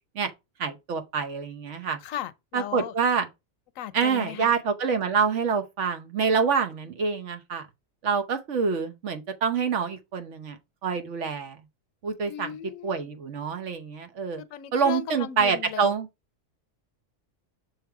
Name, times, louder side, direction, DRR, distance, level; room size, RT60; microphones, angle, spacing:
voice 1, 0.6-2.0 2.5-3.3 3.9-7.6 8.0-11.6 12.0-12.5 12.8-14.4 14.7-16.1, right 6 dB, 65° right, 1.2 m, -26 dB
voice 2, 2.0-2.9 3.8-4.5 12.2-13.1 14.4-15.9, left 11 dB, 90° left, 1.0 m, -37 dB
6.4 x 3.2 x 4.7 m
omnidirectional pair, 1.3 m